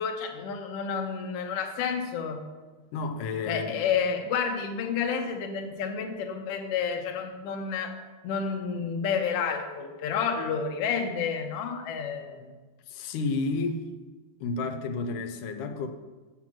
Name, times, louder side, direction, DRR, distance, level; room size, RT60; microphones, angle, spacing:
voice 1, 0.0-2.5 3.4-8.0 8.2-12.5, left 6 dB, 65° left, 1.7 m, -30 dB
voice 2, 2.9-3.8 12.9-13.9 14.4-15.9, left 3 dB, 85° left, 2.2 m, -31 dB
7.5 x 7.2 x 6.0 m
omnidirectional pair, 3.5 m